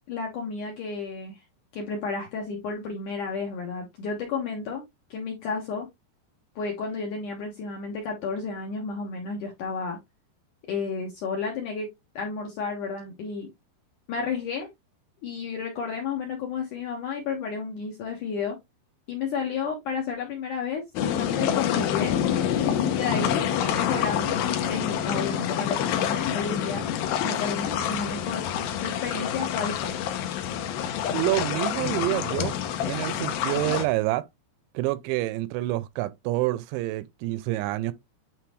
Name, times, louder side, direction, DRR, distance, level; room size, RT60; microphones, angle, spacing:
voice 1, 0.1-1.4 1.7-4.8 5.1-5.9 6.6-10.0 10.7-13.5 14.1-14.7 15.2-18.6 19.1-26.8 27.2-28.4 28.8-29.9, left 5 dB, 65° left, 2.0 m, -32 dB
sound 1, 21.0-33.9, left 9 dB, 85° left, 2.1 m, -27 dB
voice 2, 31.1-32.6 32.8-34.3 34.7-37.9, right 17 dB, 85° right, 2.8 m, -27 dB
9.2 x 3.7 x 3.1 m
omnidirectional pair, 5.5 m